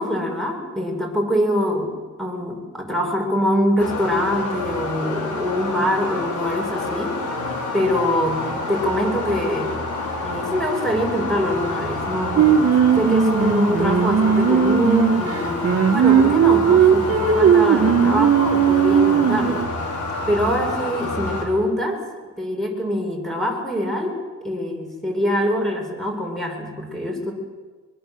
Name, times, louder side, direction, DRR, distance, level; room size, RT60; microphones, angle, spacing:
voice 1, 0.0-7.2 7.5-9.7 10.2-19.7 20.3-22.0 22.4-24.2 24.4-27.3, equal, ahead, 1 dB, 7.5 m, -24 dB
sound 1, 3.8-21.5, left 2 dB, 75° left, 5.7 m, -28 dB
Singing, 12.4-19.6, right 7 dB, 50° right, 2.1 m, -17 dB
24.0 x 23.5 x 8.0 m, 1.3 s
cardioid pair, 90°, 30 cm